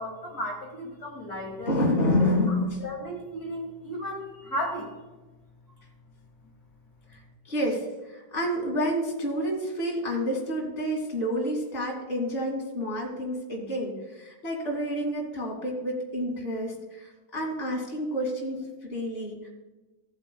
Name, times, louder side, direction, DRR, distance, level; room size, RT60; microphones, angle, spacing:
voice 1, 0.0-1.8 2.8-4.9, equal, 55° left, -2 dB, 2.3 m, -34 dB
voice 2, 1.6-2.8 7.1-19.5, equal, 30° left, -2 dB, 2.5 m, -29 dB
17.0 x 8.0 x 2.3 m, 1.1 s
omnidirectional pair, 2.0 m